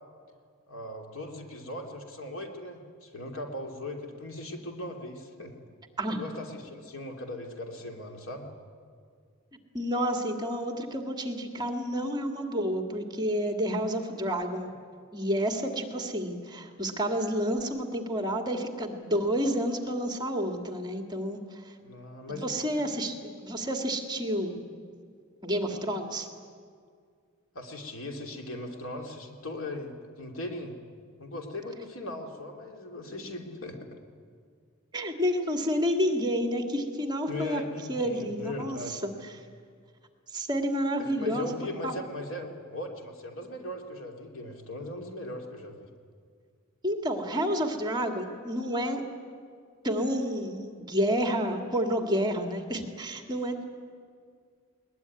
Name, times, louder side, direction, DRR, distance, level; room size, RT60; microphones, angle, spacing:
voice 1, 0.7-5.5 6.0-8.5 21.8-22.6 27.5-30.7 31.2-34.0 37.3-39.0 41.0-45.9, left 1 dB, 70° left, 3 dB, 2.9 m, -39 dB
voice 2, 9.7-14.7 15.1-21.7 22.3-24.6 25.4-26.3 34.9-37.6 37.9-39.0 40.3-41.6 41.8-41.9 46.8-49.0 49.8-53.6, equal, 20° right, 4 dB, 2.0 m, -30 dB
21.0 x 20.0 x 9.6 m, 2.1 s
head